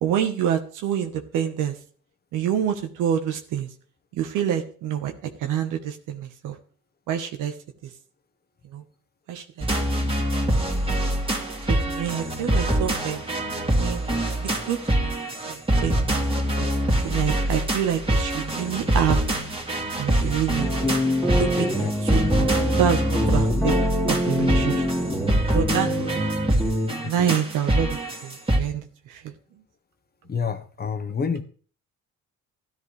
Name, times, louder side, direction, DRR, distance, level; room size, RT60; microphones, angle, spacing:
voice 1, 0.0-1.8 2.3-3.7 4.1-6.6 7.1-7.5 7.8-7.9 8.6-8.8 9.3-9.7 11.7-13.2 13.8-14.0 14.4-15.1 15.5-16.2 16.6-16.7 17.0-19.3 20.0-20.7 21.4-21.7 22.0-23.7 24.1-24.9 25.5-26.1 27.0-29.3, right 9 dB, 90° right, 6 dB, 1.2 m, -27 dB
sound 1, 9.6-28.6, right 1 dB, 20° right, 2.2 m, -25 dB
sound 2, 20.6-26.9, equal, ahead, 2.1 m, -25 dB
voice 2, 21.4-21.9 27.0-27.3 30.3-31.4, left 6 dB, 30° left, 8 dB, 1.1 m, -29 dB
13.5 x 10.5 x 3.3 m, 0.42 s
cardioid pair, 105°, 31 cm